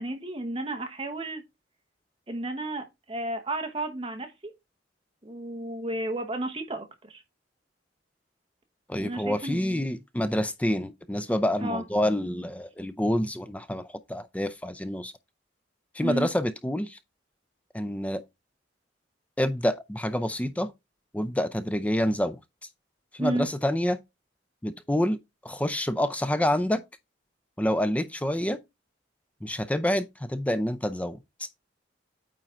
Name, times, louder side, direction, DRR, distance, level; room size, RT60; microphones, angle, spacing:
voice 1, 0.0-1.4 2.3-4.5 5.2-7.2 9.0-9.9 11.6-11.8 16.0-16.3 23.2-23.5, right 1 dB, 30° right, 1.0 m, -32 dB
voice 2, 8.9-15.1 15.9-17.0 17.7-18.2 19.4-20.7 21.1-22.4 23.1-24.0 24.6-25.2 25.4-26.8 27.6-28.6 29.4-31.5, left 1 dB, 5° left, 0.4 m, -27 dB
9.0 x 3.8 x 4.3 m
head